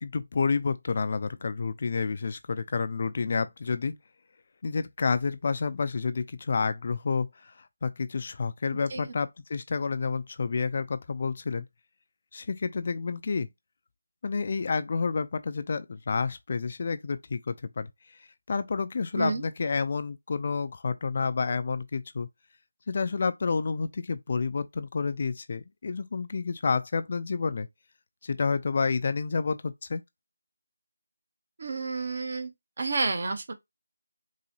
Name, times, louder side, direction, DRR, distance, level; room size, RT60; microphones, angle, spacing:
voice 1, 0.0-3.9 4.6-11.6 12.3-13.5 14.2-17.9 18.5-22.3 22.9-27.7 28.2-30.0, left 4 dB, 40° left, 0.3 m, -29 dB
voice 2, 31.6-32.5 32.8-33.5, right 3 dB, 45° right, 0.8 m, -30 dB
4.0 x 2.7 x 2.7 m
figure-of-eight pair, 165°, 0 cm